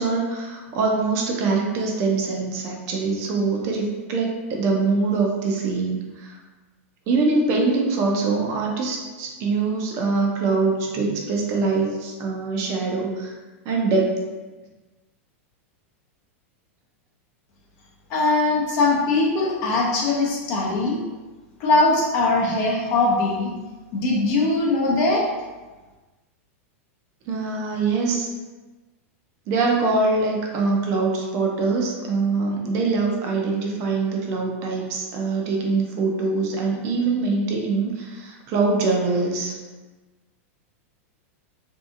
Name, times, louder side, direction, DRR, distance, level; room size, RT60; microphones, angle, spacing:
voice 1, 0.0-6.4 7.1-13.3 13.6-14.2 27.3-28.3 29.5-39.5, right 3 dB, 40° right, 0 dB, 0.5 m, -23 dB
voice 2, 18.1-21.0 21.6-23.5 23.9-25.2, left 2 dB, 45° left, -3 dB, 0.6 m, -21 dB
2.7 x 2.3 x 2.5 m, 1.2 s
supercardioid pair, 135°, 8 cm